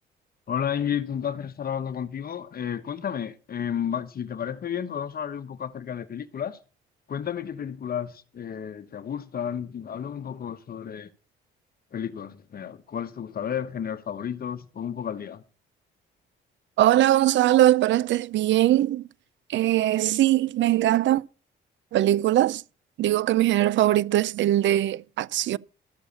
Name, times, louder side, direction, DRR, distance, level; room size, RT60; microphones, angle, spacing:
voice 1, 0.5-6.6 7.1-11.1 11.9-15.4, left 8 dB, 50° left, 1.1 m, -32 dB
voice 2, 16.8-19.1 19.5-21.2 21.9-22.6 23.0-25.6, right 13 dB, 70° right, 0.5 m, -21 dB
13.0 x 7.0 x 6.9 m
cardioid pair, 90°, 20 cm